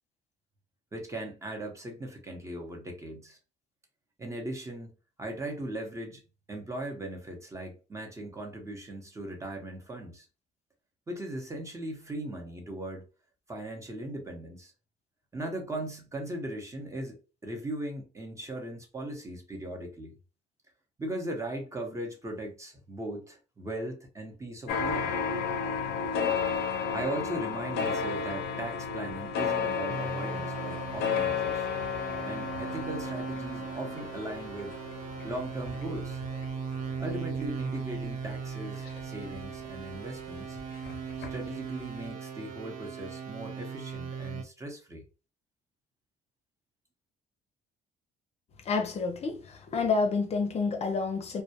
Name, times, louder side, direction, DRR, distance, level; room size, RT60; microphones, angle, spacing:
voice 1, 0.9-3.4 4.2-6.2 6.5-10.3 11.1-13.1 13.5-14.7 15.3-17.2 17.4-20.1 21.0-25.2 26.1-26.2 26.9-31.7 32.2-34.8 35.2-36.2 37.0-40.6 41.2-45.0, right 1 dB, 15° right, 0.8 m, -38 dB
sound 1, 24.7-39.8 40.2-41.6 41.8-41.9, left 6 dB, 85° left, 0.6 m, -33 dB
sound 2, 29.9-44.4, right 6 dB, 50° right, 0.6 m, -38 dB
voice 2, 48.7-51.4, left 4 dB, 40° left, 0.6 m, -29 dB
2.2 x 2.2 x 2.7 m
cardioid pair, 110°, 17 cm